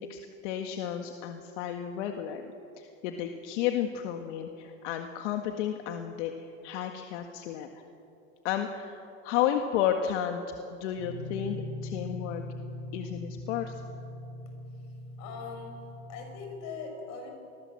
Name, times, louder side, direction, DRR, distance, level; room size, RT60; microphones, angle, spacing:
voice 1, 0.0-2.4 2.8-7.7 8.4-10.4 10.7-12.4 12.9-13.8, left 10 dB, 70° left, 5 dB, 1.8 m, -32 dB
sound 1, 11.0-16.6, left 1 dB, ahead, 5.6 m, -41 dB
voice 2, 15.2-17.3, left 5 dB, 45° left, 3 dB, 6.9 m, -41 dB
29.0 x 21.5 x 7.8 m, 2.8 s
supercardioid pair, 155°, 37 cm